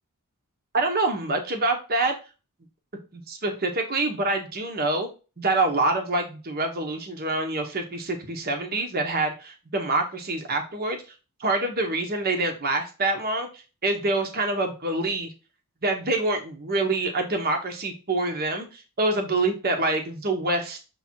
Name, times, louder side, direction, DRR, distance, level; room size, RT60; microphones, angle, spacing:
voice 1, 0.7-2.1 3.1-5.1 5.4-11.0 11.4-15.3 15.8-20.8, right 2 dB, 45° right, 3 dB, 1.3 m, -26 dB
7.2 x 3.5 x 4.6 m, 0.32 s
head